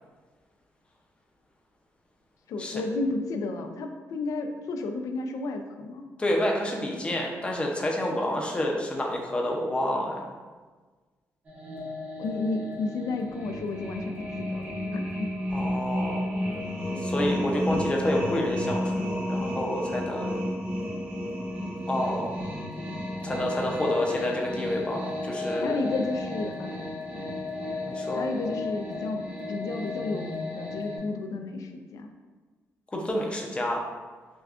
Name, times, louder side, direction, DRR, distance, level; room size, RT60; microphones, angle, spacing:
voice 1, 2.5-6.1 12.2-15.3 25.6-26.9 27.1-27.3 28.1-32.1, left 3 dB, 80° left, 5 dB, 0.4 m, -32 dB
voice 2, 6.2-10.2 15.5-16.3 17.0-20.4 21.9-22.4 23.2-25.7 27.8-28.3 32.9-33.8, left 1 dB, 20° left, 0 dB, 0.6 m, -29 dB
sound 1, 11.4-31.0, left 1 dB, 30° right, 0.9 m, -32 dB
6.0 x 2.3 x 2.4 m, 1.4 s
wide cardioid pair, 145°, 6 cm